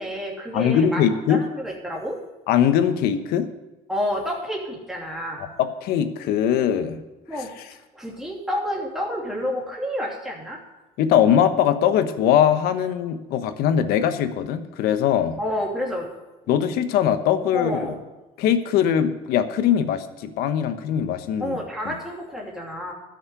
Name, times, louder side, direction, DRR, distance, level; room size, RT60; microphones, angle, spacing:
voice 1, 0.0-1.0 1.3-2.2 3.9-5.4 7.3-7.5 7.9-10.6 15.4-16.1 16.5-16.6 17.5-18.0 21.4-22.9, left 1 dB, 5° right, -2 dB, 2.8 m, -29 dB
voice 2, 0.5-1.4 2.5-3.5 5.6-7.0 11.0-15.4 16.5-17.9 18.4-21.6 21.8-21.9, left 9 dB, 80° left, 10 dB, 1.1 m, -21 dB
13.0 x 6.5 x 8.2 m, 1.1 s
cardioid pair, 120°, 16 cm